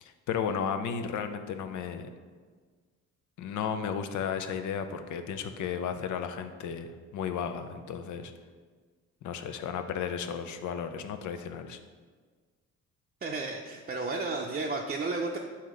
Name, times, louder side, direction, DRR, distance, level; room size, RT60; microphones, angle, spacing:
voice 1, 0.0-2.1 3.4-8.3 9.2-11.8, left 7 dB, 75° left, 8 dB, 0.6 m, -34 dB
voice 2, 13.2-15.4, right 3 dB, 30° right, -2 dB, 0.5 m, -32 dB
7.4 x 2.8 x 4.8 m, 1.5 s
cardioid pair, 90°, 30 cm